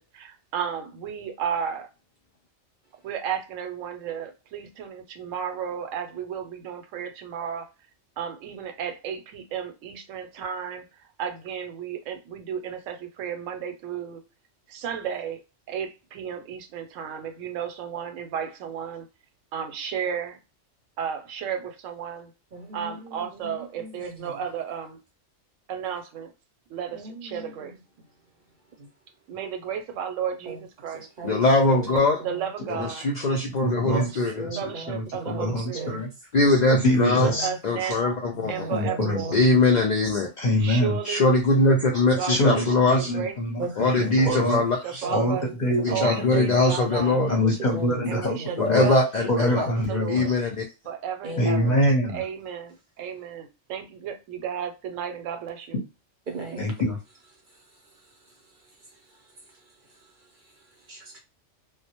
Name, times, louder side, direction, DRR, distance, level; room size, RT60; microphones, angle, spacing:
voice 1, 0.0-1.9 3.0-7.7 8.2-14.2 14.7-15.4 15.7-19.1 19.5-20.4 21.0-22.3 22.7-25.0 25.7-26.3 26.7-27.8 29.3-31.1 32.2-33.0 33.8-35.9 37.1-39.3 40.6-41.3 42.2-43.4 44.2-44.3 44.8-45.4 45.9-47.2 48.1-50.3 50.8-51.7 52.1-55.8, right 8 dB, 85° right, 0.9 m, -33 dB
voice 2, 22.5-24.3 26.9-27.8 28.8-28.9 30.5-30.6 30.9-31.4 31.7-32.5 34.0-36.0 37.1-37.5 38.3-39.4 43.6-44.5 45.0-45.5 45.9-46.4 47.4-48.8 50.3-50.4 51.2-51.8 56.3-56.6 59.2-59.3 60.9-61.2, right 2 dB, 50° right, 0.6 m, -38 dB
voice 3, 31.2-32.2 32.7-34.4 36.3-37.3 37.6-38.7 39.3-40.3 41.0-43.1 43.8-45.0 45.8-47.4 48.6-49.7 50.1-50.6, left 2 dB, 70° left, 0.4 m, -21 dB
voice 4, 33.6-34.1 34.4-36.1 36.7-37.5 38.7-39.2 40.4-41.0 42.3-44.6 45.1-46.5 47.3-48.9 49.3-50.2 51.4-52.2 56.6-57.0, left 1 dB, 45° left, 0.7 m, -25 dB
2.1 x 2.0 x 2.8 m
omnidirectional pair, 1.3 m